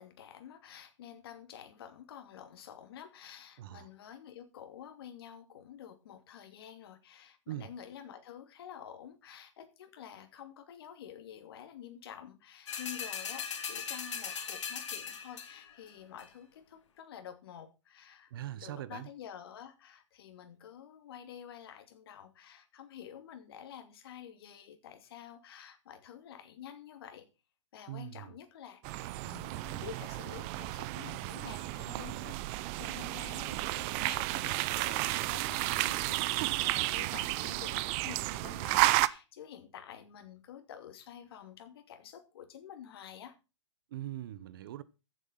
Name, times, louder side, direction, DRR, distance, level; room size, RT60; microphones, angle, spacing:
voice 1, 0.0-27.3 27.7-43.3, left 9 dB, 50° left, 2.6 m, -49 dB
voice 2, 3.6-3.9 7.5-7.7 18.3-19.1 27.9-28.3 43.9-44.8, right 13 dB, 45° right, 1.0 m, -41 dB
sound 1, 12.7-15.7 16.2-16.3, left 7 dB, 65° left, 3.1 m, -39 dB
sound 2, 28.8-39.1, right 19 dB, 25° right, 0.5 m, -32 dB
14.5 x 7.9 x 5.7 m
hypercardioid pair, 155°, 16 cm